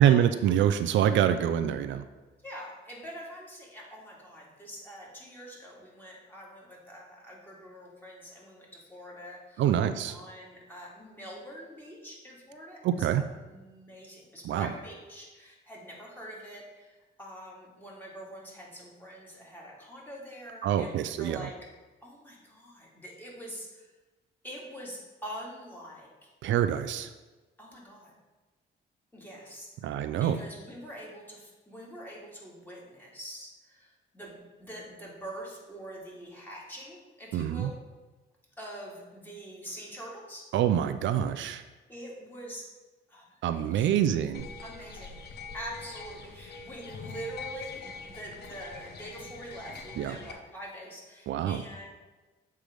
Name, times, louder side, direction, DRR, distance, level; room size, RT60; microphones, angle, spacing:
voice 1, 0.0-2.0 9.6-10.2 12.8-13.2 14.4-14.7 20.6-21.5 26.4-27.1 29.8-30.4 37.3-37.7 40.5-41.6 43.4-44.5 50.0-50.2 51.3-51.6, right 10 dB, 70° right, 10 dB, 0.4 m, -25 dB
voice 2, 2.4-9.7 10.0-21.5 22.0-23.9 24.4-26.3 27.6-28.1 29.1-29.7 29.9-37.7 38.6-40.4 41.9-42.6 43.1-43.2 43.5-43.9 44.6-45.1 45.5-51.9, equal, 10° left, -4 dB, 2.3 m, -44 dB
sound 1, 44.3-50.3, left 4 dB, 55° left, 0.9 m, -44 dB
7.6 x 3.3 x 5.1 m, 1.2 s
cardioid pair, 90°, 20 cm